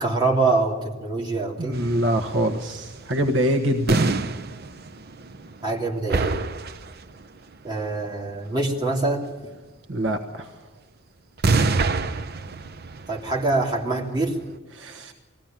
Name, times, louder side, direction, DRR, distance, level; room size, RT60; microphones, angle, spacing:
voice 1, 0.0-1.8 5.6-6.4 7.6-9.3 13.1-14.4, right 3 dB, 20° right, -3 dB, 3.1 m, -24 dB
voice 2, 1.6-4.1 9.9-10.5 14.7-15.1, right 1 dB, 65° right, 6 dB, 1.3 m, -24 dB
sound 1, 1.7-5.8 6.1-7.2 11.4-14.4, right 3 dB, 50° right, 0.8 m, -27 dB
21.5 x 15.5 x 9.0 m, 1.2 s
head